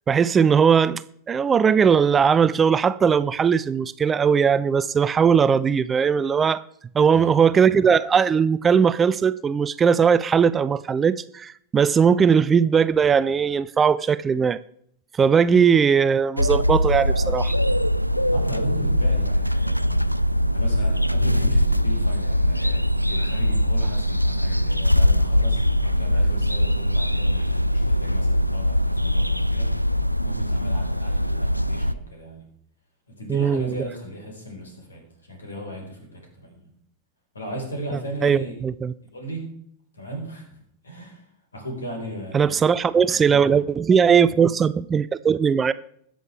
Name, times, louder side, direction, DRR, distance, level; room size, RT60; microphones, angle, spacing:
voice 1, 0.1-6.6 6.9-14.6 15.1-17.5 33.3-33.7 38.2-38.9 42.3-45.7, right 6 dB, 20° right, 0.4 m, -19 dB
sound 1, 16.4-31.9, equal, 90° right, 0.3 m, -21 dB
voice 2, 18.3-20.1 20.5-29.7 30.2-32.5 33.2-36.7 37.3-38.5 39.1-39.6 39.9-41.2 41.5-43.6, right 1 dB, 75° left, 4.6 m, -36 dB
21.5 x 7.7 x 3.5 m
figure-of-eight pair, 90°, 0 cm